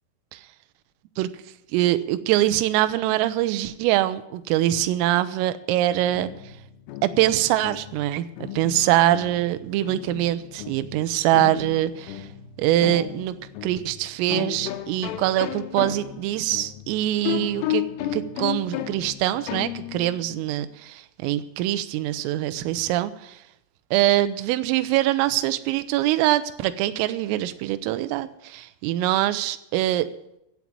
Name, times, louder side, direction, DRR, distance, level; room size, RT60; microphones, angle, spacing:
voice 1, 1.7-6.3 7.0-12.3 12.6-13.3 13.6-17.8 18.1-23.4 23.9-30.1, right 14 dB, 85° right, 11 dB, 3.3 m, -23 dB
sound 1, 5.9-20.2, left 12 dB, 90° left, 3.5 m, -34 dB
15.0 x 7.3 x 9.5 m, 0.82 s
omnidirectional pair, 5.9 m